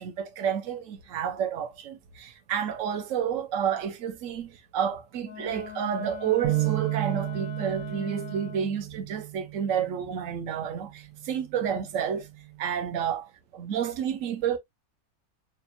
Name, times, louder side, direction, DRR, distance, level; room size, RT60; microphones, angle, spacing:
voice 1, 0.0-12.3 12.6-13.3 13.5-14.6, right 8 dB, 65° right, 1.1 m, -30 dB
Wind instrument woodwind instrument, 5.2-8.9, left 11 dB, 75° left, 1.1 m, -42 dB
sound 1, 6.4-12.7, right 20 dB, 85° right, 1.1 m, -34 dB
5.2 x 2.4 x 2.6 m
omnidirectional pair, 1.6 m